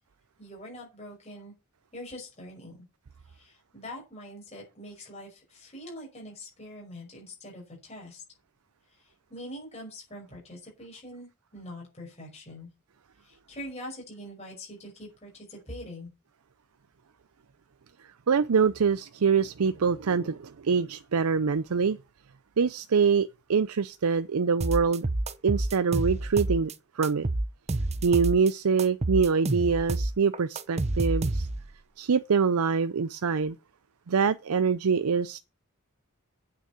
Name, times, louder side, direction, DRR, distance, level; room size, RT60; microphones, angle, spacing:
voice 1, 0.4-1.5 1.9-2.8 3.3-8.2 9.3-12.7 13.2-16.1, left 1 dB, 30° left, 5.6 m, -43 dB
voice 2, 18.3-22.0 22.6-25.1 25.4-26.7 27.0-27.3 28.0-31.5 32.0-33.6 34.1-35.4, right 5 dB, 85° right, 0.5 m, -24 dB
sound 1, 24.6-26.7 27.0-28.5 28.8-31.7, right 2 dB, 30° right, 0.7 m, -29 dB
9.1 x 6.4 x 8.2 m
head